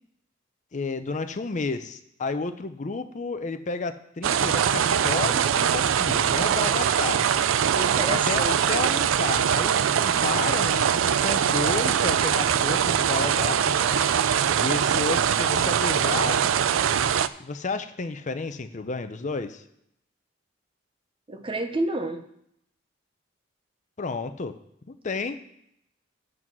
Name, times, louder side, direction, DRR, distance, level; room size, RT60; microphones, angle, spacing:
voice 1, 0.7-7.2 8.1-14.0 14.6-16.5 17.4-19.6 24.0-24.5 24.9-25.4, left 4 dB, 40° left, 10 dB, 0.6 m, -31 dB
sound 1, 4.2-17.3, right 8 dB, 85° right, 0.4 m, -22 dB
voice 2, 7.7-8.7 21.3-22.2, right 2 dB, 25° right, 7 dB, 0.8 m, -29 dB
9.1 x 6.2 x 6.1 m, 0.76 s
head